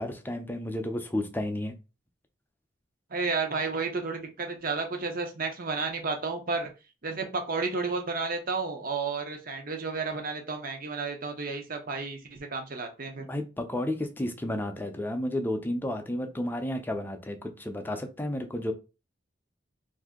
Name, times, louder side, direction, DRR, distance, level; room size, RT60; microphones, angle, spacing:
voice 1, 0.0-1.7 13.3-18.7, left 1 dB, 10° left, 0.5 m, -32 dB
voice 2, 3.1-6.7 7.0-13.3, right 4 dB, 50° right, 0.8 m, -32 dB
2.7 x 2.6 x 3.6 m
head